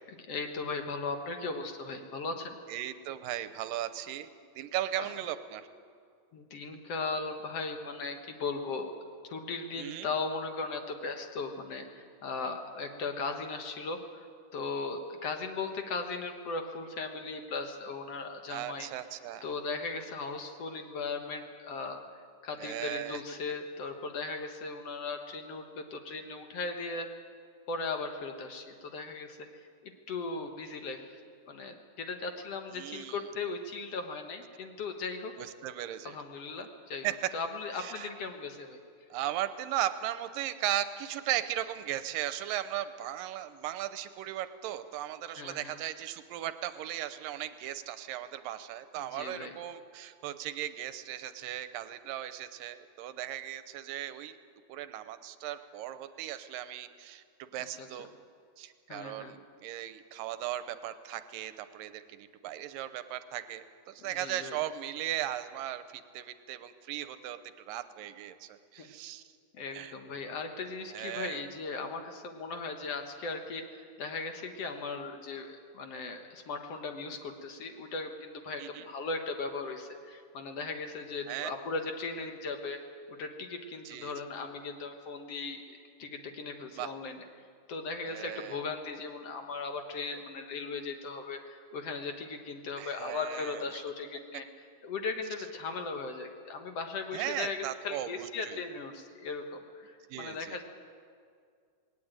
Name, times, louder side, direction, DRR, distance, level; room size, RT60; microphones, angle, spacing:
voice 1, 0.1-2.6 5.0-5.1 6.3-8.9 9.3-14.3 14.5-18.9 19.4-22.0 22.4-27.1 27.7-31.2 31.5-35.3 36.1-37.1 37.3-38.8 45.4-45.8 49.0-49.6 57.8-57.9 58.9-59.4 64.0-64.6 68.8-68.9 69.5-82.8 83.1-85.6 86.0-87.3 87.7-94.5 94.8-100.6, left 4 dB, 55° left, 5 dB, 1.9 m, -38 dB
voice 2, 2.7-4.3 4.6-5.7 9.8-10.1 18.5-19.4 22.6-23.2 32.7-33.3 35.4-36.2 37.0-37.1 37.8-38.1 39.1-54.4 54.7-58.1 58.6-69.2 69.7-69.9 70.9-71.5 78.6-78.9 81.3-81.5 83.9-84.1 86.8-86.9 88.0-88.6 92.8-93.8 97.1-98.6 100.1-100.6, right 12 dB, 85° right, 11 dB, 2.5 m, -37 dB
19.5 x 18.0 x 8.9 m, 2.2 s
omnidirectional pair, 3.9 m